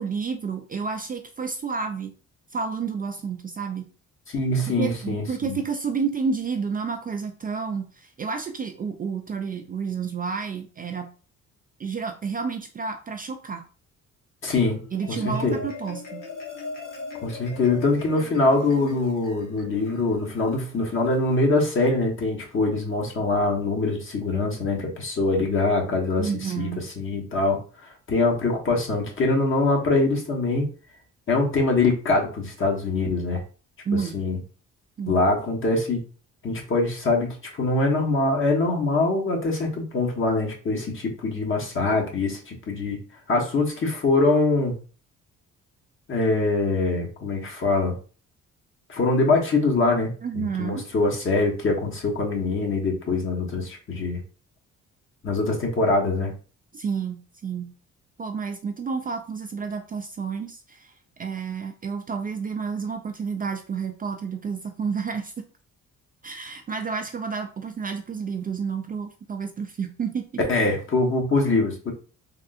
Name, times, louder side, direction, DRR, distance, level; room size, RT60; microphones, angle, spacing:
voice 1, 0.0-2.1 2.5-3.9 4.7-11.1 11.8-13.6 14.9-16.3 26.2-26.9 33.9-34.2 35.0-35.2 50.2-50.9 56.7-57.7 58.2-60.9 61.2-65.3 66.2-70.3, right 5 dB, 30° right, 6 dB, 0.3 m, -30 dB
voice 2, 4.3-5.6 14.4-15.6 17.2-26.7 27.0-27.6 28.1-30.7 31.3-33.4 34.1-34.4 35.1-36.0 36.4-43.0 43.3-44.8 46.1-47.9 48.9-54.2 55.2-56.3 70.5-71.9, left 3 dB, 40° left, 0 dB, 1.2 m, -23 dB
Marimba xylophone, 14.7-21.3, left 3 dB, 85° left, 1.1 m, -40 dB
3.5 x 2.5 x 2.4 m, 0.37 s
cardioid pair, 90°, 30 cm